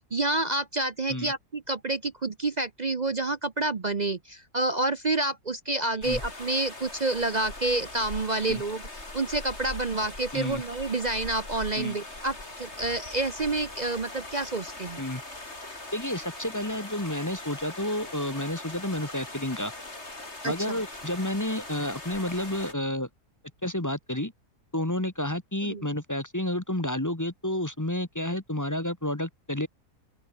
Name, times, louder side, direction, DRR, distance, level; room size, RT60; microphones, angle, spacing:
voice 1, 0.1-15.0 20.4-20.8 25.6-25.9, right 2 dB, 35° right, 0.8 m, -29 dB
sound 1, 6.0-22.7, left 2 dB, 45° left, 5.2 m, -41 dB
voice 2, 15.9-19.7 20.4-23.1 23.6-24.3 24.7-29.7, left 1 dB, 10° left, 1.4 m, -30 dB
omnidirectional pair, 1.6 m